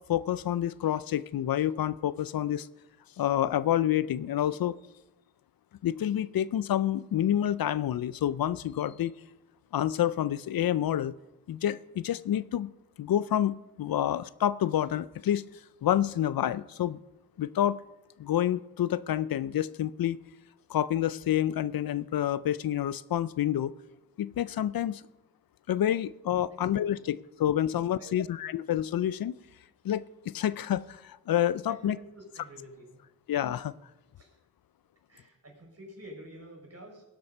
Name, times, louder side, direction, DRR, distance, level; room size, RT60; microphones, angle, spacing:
voice 1, 0.0-2.7 3.2-4.8 5.8-9.1 9.7-11.2 11.5-12.7 13.0-15.4 15.8-17.0 17.4-17.8 18.2-20.2 20.7-23.7 24.2-25.0 25.7-29.3 29.8-32.0 33.3-33.7, left 11 dB, 75° left, 18 dB, 0.5 m, -28 dB
voice 2, 31.7-33.0 34.2-34.3 35.1-37.0, equal, 45° right, 1 dB, 5.0 m, -49 dB
17.5 x 7.7 x 5.3 m, 0.96 s
cardioid pair, 45°, 36 cm